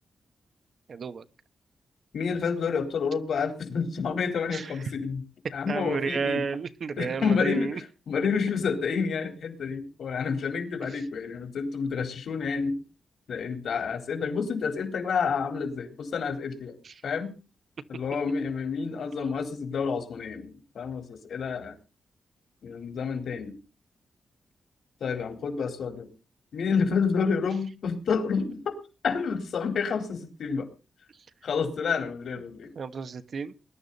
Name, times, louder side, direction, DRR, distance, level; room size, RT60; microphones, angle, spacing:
voice 1, 0.9-1.2 4.5-4.7 5.7-7.8 10.9-11.0 16.8-16.9 32.3-32.4 32.7-33.5, right 5 dB, 55° right, 11 dB, 1.3 m, -32 dB
voice 2, 2.1-5.2 5.5-6.4 7.0-7.8 8.1-12.8 13.3-16.7 17.0-17.3 17.9-21.7 22.6-23.5 25.0-26.1 26.5-28.7 29.0-30.7 31.4-32.7, left 5 dB, 75° left, 5 dB, 3.9 m, -29 dB
20.5 x 12.0 x 4.2 m, 0.33 s
wide cardioid pair, 115°, 0 cm